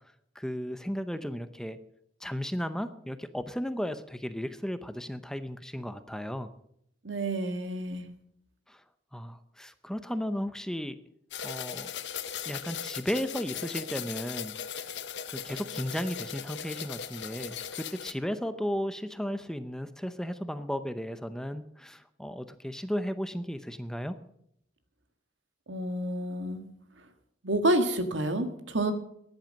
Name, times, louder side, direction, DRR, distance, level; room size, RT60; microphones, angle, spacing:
voice 1, 0.3-1.8 2.2-6.5 8.7-8.8 9.1-11.0 11.4-11.9 12.5-14.9 15.3-24.2, equal, 5° left, 10 dB, 0.6 m, -35 dB
voice 2, 7.0-8.0 25.7-26.6 27.4-28.9, right 1 dB, 80° right, 7 dB, 1.8 m, -29 dB
sound 1, 11.3-18.1, left 8 dB, 65° left, 0.8 m, -38 dB
14.0 x 10.5 x 6.5 m, 0.73 s
head